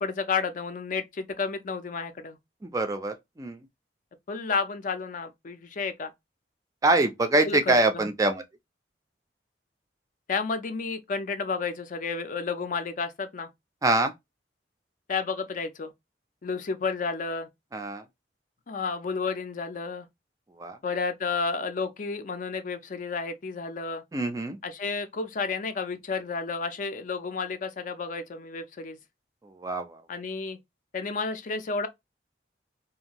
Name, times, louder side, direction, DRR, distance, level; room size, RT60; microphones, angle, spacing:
voice 1, 0.0-2.4 4.3-6.1 7.4-8.0 10.3-13.5 15.1-15.9 16.4-17.5 18.7-20.1 20.8-24.0 24.6-29.0 30.1-30.6 30.9-31.9, left 4 dB, 45° left, 0.4 m, -31 dB
voice 2, 2.7-3.6 6.8-8.4 13.8-14.1 17.7-18.0 20.6-20.8 24.1-24.6 29.6-29.9, right 2 dB, 20° right, 0.4 m, -24 dB
2.6 x 2.4 x 2.9 m
head